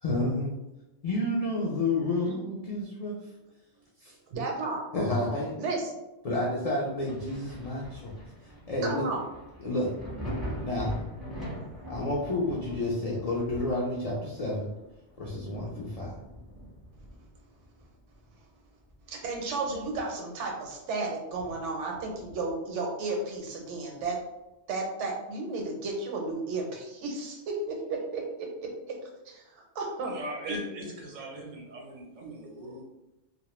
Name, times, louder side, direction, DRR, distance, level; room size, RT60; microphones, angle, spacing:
voice 1, 0.0-0.6 1.0-3.2 4.0-4.1 4.9-5.6 6.2-8.1 8.7-9.1 9.6-9.9 10.6-10.9 11.9-14.7 15.2-16.1, left 2 dB, 65° left, -4 dB, 0.3 m, -30 dB
voice 2, 4.3-4.8 5.6-5.8 8.8-9.2 19.1-24.2 24.7-29.0 29.3-29.4 29.8-30.1, right 3 dB, 85° right, 1 dB, 0.9 m, -33 dB
Thunder, 7.1-18.4 18.8-20.3 20.7-20.8 21.3-22.6 24.0-24.1, equal, ahead, 0.5 m, -42 dB
voice 3, 30.0-32.8, right 1 dB, 55° right, -1 dB, 0.5 m, -39 dB
2.2 x 2.0 x 2.9 m, 0.97 s
omnidirectional pair, 1.2 m